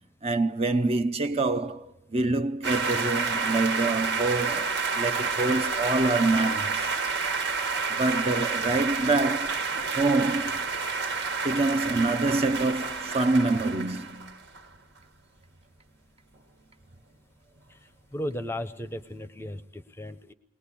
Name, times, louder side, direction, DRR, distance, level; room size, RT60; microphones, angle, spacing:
voice 1, 0.2-7.0 7.9-9.6 9.9-10.6 11.4-14.3, right 2 dB, 30° right, 0.8 m, -26 dB
sound 1, 2.6-14.7, right 4 dB, 65° right, 1.8 m, -29 dB
voice 2, 17.7-20.3, left 1 dB, 10° left, 0.8 m, -36 dB
20.5 x 19.0 x 8.5 m
head